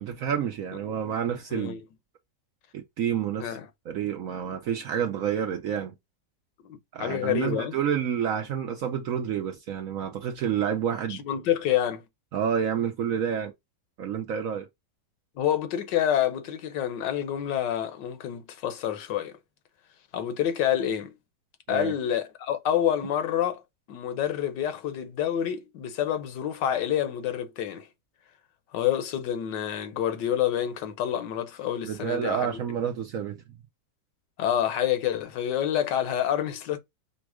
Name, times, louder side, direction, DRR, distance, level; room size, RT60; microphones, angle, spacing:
voice 1, 0.0-1.8 2.7-3.5 3.9-5.9 6.9-11.2 12.3-13.5 14.0-14.7 21.7-21.9 31.8-33.4, right 8 dB, 65° right, 0.8 m, -29 dB
voice 2, 6.6-7.7 11.1-12.0 15.4-19.4 20.1-21.2 21.7-23.6 23.9-27.9 28.7-32.6 34.4-36.8, left 10 dB, 80° left, 1.4 m, -28 dB
5.2 x 2.1 x 4.7 m
omnidirectional pair, 1.9 m